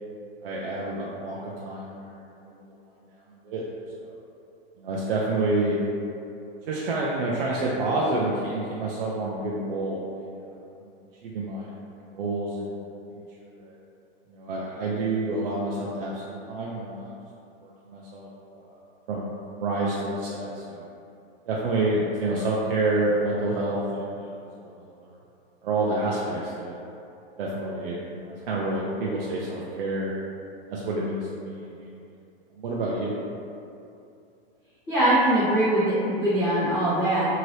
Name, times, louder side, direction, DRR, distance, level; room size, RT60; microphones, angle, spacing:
voice 1, 0.4-2.7 3.3-3.6 4.0-4.1 4.8-5.8 6.7-10.9 11.2-13.7 14.3-17.1 17.6-18.3 18.5-18.8 19.1-20.9 21.5-24.3 24.6-25.2 25.6-26.8 27.4-30.1 30.7-32.2 32.5-33.1, right 2 dB, 65° right, -5 dB, 0.5 m, -29 dB
voice 2, 34.9-37.3, right 1 dB, 15° left, -18 dB, 0.8 m, -22 dB
2.8 x 2.7 x 3.1 m, 2.6 s
supercardioid pair, 170°, 30 cm